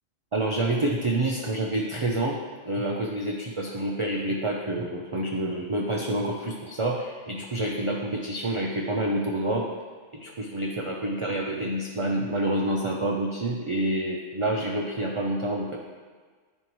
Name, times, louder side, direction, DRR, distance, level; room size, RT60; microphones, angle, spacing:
voice 1, 0.3-2.4 2.6-9.7 10.1-15.8, right 1 dB, 40° right, -2 dB, 0.4 m, -28 dB
11.0 x 4.4 x 3.0 m, 1.5 s
omnidirectional pair, 1.3 m